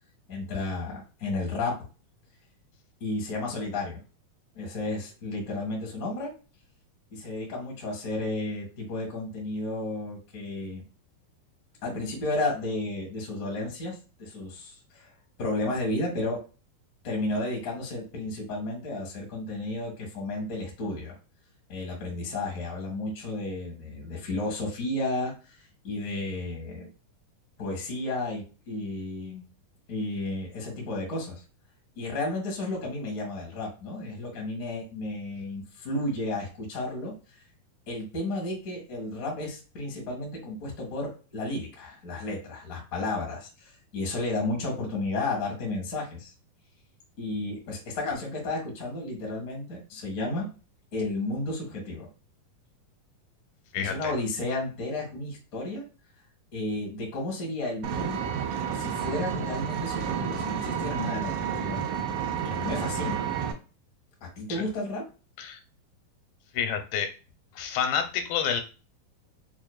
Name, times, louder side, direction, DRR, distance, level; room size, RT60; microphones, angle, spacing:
voice 1, 0.3-1.8 3.0-4.0 4.5-6.3 7.1-10.8 11.8-15.1 15.4-16.4 17.0-21.2 21.7-25.6 25.8-26.9 27.6-29.5 29.9-31.3 32.0-37.1 37.9-46.3 47.2-50.5 50.9-52.1 53.7-55.8 56.5-58.3 58.8-61.8 62.4-63.2 64.2-65.0, left 2 dB, 60° left, -1 dB, 0.8 m, -32 dB
voice 2, 53.7-54.1 64.5-64.6 65.4-65.6 66.5-67.1 67.6-68.6, left 7 dB, 85° left, 7 dB, 2.5 m, -29 dB
Vehicle, 57.8-63.5, right 8 dB, 75° right, 2.1 m, -30 dB
5.7 x 2.5 x 2.3 m, 0.34 s
omnidirectional pair, 4.2 m